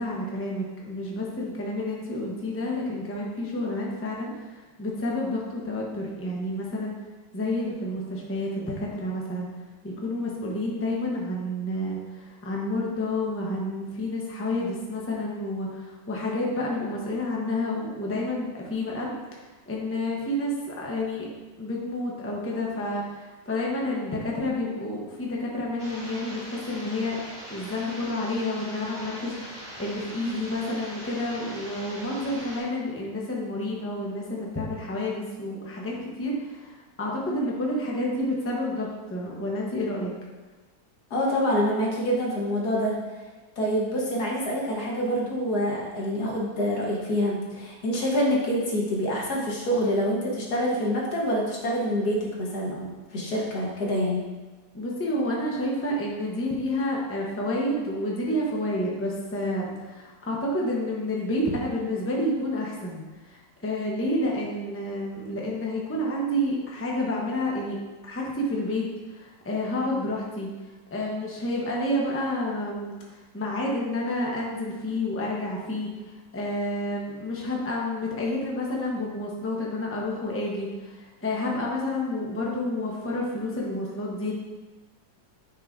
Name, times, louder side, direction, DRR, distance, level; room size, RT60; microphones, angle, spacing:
voice 1, 0.0-6.9 7.3-9.5 9.8-19.1 19.7-21.3 21.6-27.2 27.5-40.1 54.7-67.8 68.0-68.8 69.1-70.5 70.9-75.9 76.3-84.3, left 1 dB, 10° left, -3 dB, 0.8 m, -29 dB
sound 1, 25.8-32.6, equal, 30° right, 2.6 m, -41 dB
voice 2, 41.1-43.0 43.6-54.2, equal, 60° left, -3 dB, 1.8 m, -26 dB
9.4 x 5.5 x 2.7 m, 1.2 s
omnidirectional pair, 1.9 m